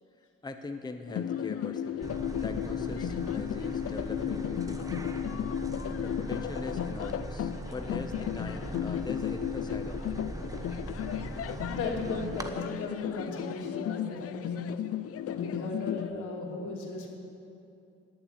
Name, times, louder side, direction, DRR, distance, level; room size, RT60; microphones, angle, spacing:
voice 1, 0.0-5.2 6.0-10.2 11.4-11.5, left 3 dB, 15° left, 6 dB, 0.8 m, -42 dB
sound 1, 1.1-16.1, left 10 dB, 50° left, 0.6 m, -34 dB
sound 2, 2.0-12.5, right 2 dB, 10° right, 1.1 m, -40 dB
voice 2, 11.7-14.7 15.3-17.1, left 3 dB, 80° left, 0 dB, 2.8 m, -36 dB
17.5 x 7.5 x 9.4 m, 2.7 s
cardioid pair, 90°, 30 cm